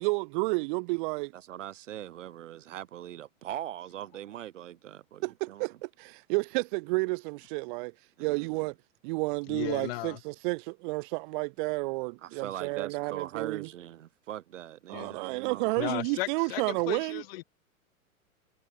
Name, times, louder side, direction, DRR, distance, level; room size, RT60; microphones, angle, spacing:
voice 1, 0.0-1.3 5.2-7.9 8.2-8.7 9.0-13.7 14.9-17.2, right 27 dB, 35° right, 1.2 m, -31 dB
voice 2, 1.3-5.7 8.2-8.5 12.2-15.7, right 12 dB, 60° right, 1.0 m, -41 dB
voice 3, 9.5-10.2 14.9-15.2 15.8-17.4, left 20 dB, 45° left, 1.7 m, -35 dB
figure-of-eight pair, 100°, 42 cm